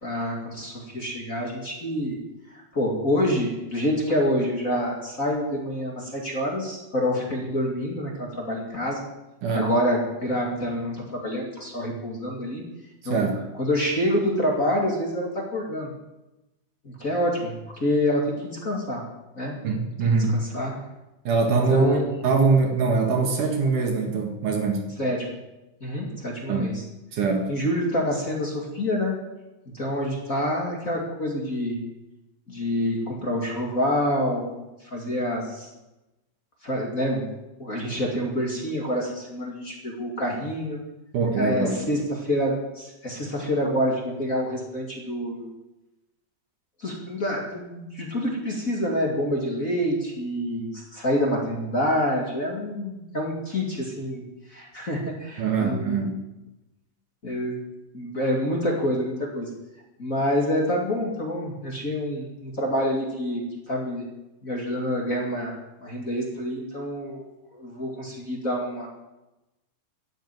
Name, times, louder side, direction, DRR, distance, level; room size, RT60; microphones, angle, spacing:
voice 1, 0.0-2.2 2.7-9.0 9.5-12.6 13.0-13.2 13.6-15.9 16.8-17.5 17.8-19.0 19.3-19.6 20.0-20.7 21.7-22.1 25.0-25.2 25.8-26.8 27.5-29.2 29.7-31.8 32.5-34.4 34.8-35.7 36.6-37.3 37.6-40.8 41.4-45.5 46.8-54.2 54.5-56.1 57.2-57.6 57.9-59.5 60.0-63.4 63.7-64.0 64.4-65.5 65.8-67.2 67.5-68.9, equal, 30° left, -1 dB, 1.7 m, -27 dB
voice 2, 9.4-9.7 13.0-13.4 19.6-20.4 21.2-24.9 26.5-26.7 27.1-27.5 41.1-41.8 55.4-56.2, right 4 dB, 55° right, 3 dB, 2.7 m, -23 dB
14.5 x 8.1 x 9.2 m, 0.99 s
omnidirectional pair, 5.1 m